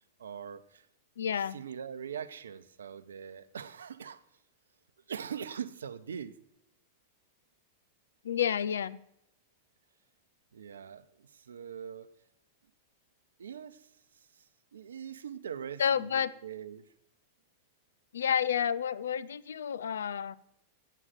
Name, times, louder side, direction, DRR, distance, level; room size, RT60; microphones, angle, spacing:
voice 1, 0.2-0.8 1.5-4.2 5.1-6.3 10.5-12.1 13.4-13.8 14.7-16.8, right 8 dB, 75° right, 13 dB, 0.7 m, -42 dB
voice 2, 1.2-1.6 8.2-9.0 15.8-16.3 18.1-20.4, left 8 dB, 75° left, 17 dB, 0.4 m, -30 dB
7.9 x 7.4 x 7.6 m, 0.79 s
hypercardioid pair, 95°, 0 cm